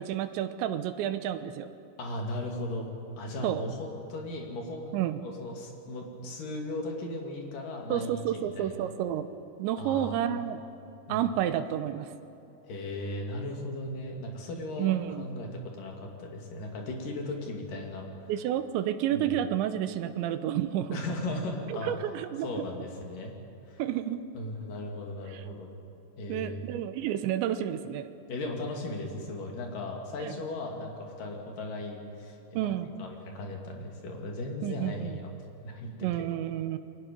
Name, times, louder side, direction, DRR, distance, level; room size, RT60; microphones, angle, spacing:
voice 1, 0.0-1.7 3.4-3.6 4.9-5.2 7.9-9.3 9.6-10.6 11.1-12.1 14.8-15.2 18.3-21.0 21.7-22.7 23.8-24.2 25.3-25.4 26.3-28.1 30.2-30.4 32.5-32.9 34.6-35.2 36.0-36.8, right 11 dB, 85° right, 10 dB, 3.1 m, -30 dB
voice 2, 2.0-2.9 3.2-8.9 9.8-10.2 11.1-11.3 12.6-14.9 15.2-18.3 19.1-19.4 20.9-21.9 22.4-23.3 23.7-23.8 24.4-25.7 26.2-26.6 28.3-35.3 35.6-36.3, left 1 dB, 50° left, 0 dB, 3.8 m, -37 dB
28.5 x 22.0 x 5.4 m, 2.7 s
omnidirectional pair, 5.3 m